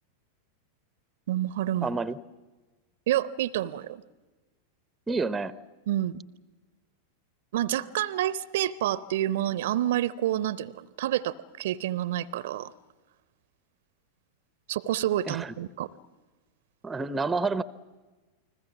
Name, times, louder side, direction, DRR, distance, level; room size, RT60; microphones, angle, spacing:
voice 1, 1.3-1.9 3.1-4.0 5.9-6.2 7.5-12.7 14.7-15.9, right 13 dB, 55° right, 19 dB, 0.7 m, -28 dB
voice 2, 1.8-2.2 5.1-5.5 15.3-15.5 16.8-17.6, right 3 dB, 10° right, 17 dB, 0.8 m, -29 dB
29.5 x 20.5 x 7.3 m, 1.2 s
figure-of-eight pair, 90°, 0 cm